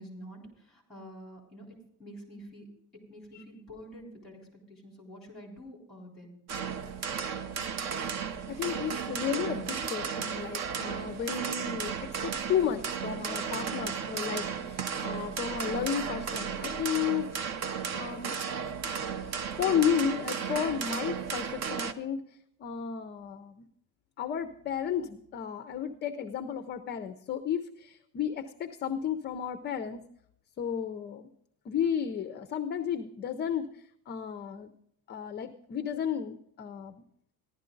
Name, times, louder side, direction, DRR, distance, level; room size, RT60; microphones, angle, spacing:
voice 1, 0.0-2.7 2.9-6.4, equal, ahead, -1 dB, 3.7 m, -48 dB
sound 1, 6.5-21.9, right 6 dB, 45° right, 0.7 m, -34 dB
voice 2, 8.5-17.3 17.7-18.4 19.1-23.7 24.2-30.0 30.6-31.3 31.7-34.7 35.1-37.0, left 8 dB, 30° left, 9 dB, 0.4 m, -33 dB
15.0 x 11.5 x 3.8 m, 0.70 s
cardioid pair, 180°, 37 cm